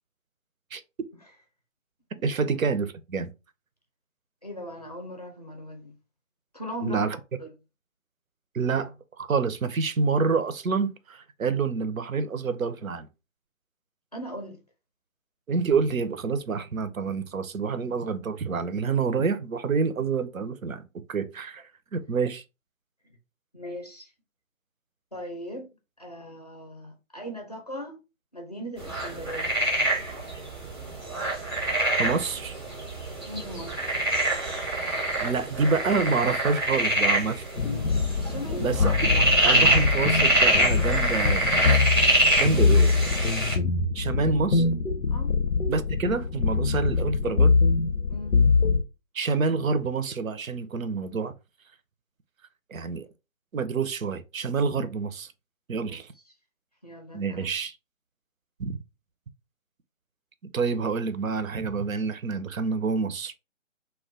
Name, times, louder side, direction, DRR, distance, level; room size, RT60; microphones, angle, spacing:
voice 1, 2.2-3.3 6.8-7.2 8.5-13.1 15.5-20.8 21.1-22.4 32.0-32.5 35.2-37.4 38.6-41.8 42.4-42.9 43.9-44.7 45.7-47.5 49.1-51.3 52.7-53.1 53.5-55.3 55.7-56.1 57.1-57.8 58.6-58.8 60.5-63.3, right 4 dB, 90° right, 0.6 m, -27 dB
voice 2, 4.4-5.9 6.5-7.1 7.4-7.5 14.1-14.6 23.0-23.2 23.5-24.1 25.1-25.7 26.0-28.0 28.3-29.5 33.3-33.7 38.2-38.7 42.4-42.8 45.1-45.3 48.1-48.4 55.8-56.0 56.8-57.5, equal, 30° left, 0.5 m, -38 dB
sound 1, 28.8-43.6, right 1 dB, 20° right, 0.6 m, -25 dB
sound 2, 37.6-48.8, left 4 dB, 85° left, 0.6 m, -24 dB
2.3 x 2.2 x 3.5 m
figure-of-eight pair, 150°, 40 cm